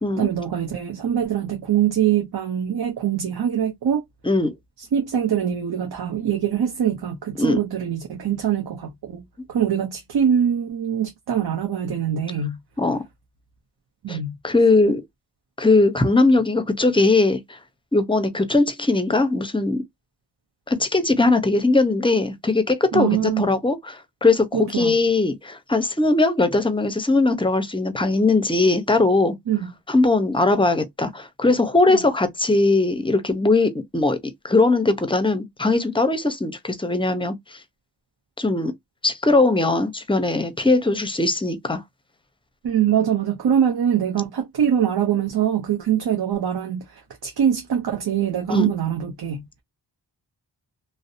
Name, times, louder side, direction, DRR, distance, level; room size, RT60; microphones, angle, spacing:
voice 1, 0.2-4.0 4.8-12.6 14.0-14.3 22.9-23.5 24.5-25.0 29.5-29.7 42.6-49.5, right 9 dB, 60° right, 0.7 m, -23 dB
voice 2, 14.4-15.0 15.6-17.6 17.9-19.8 20.7-29.4 29.9-37.6 38.4-38.7 39.0-41.8 48.5-48.7, left 2 dB, 10° left, 0.6 m, -20 dB
2.6 x 2.0 x 2.5 m
cardioid pair, 45°, 42 cm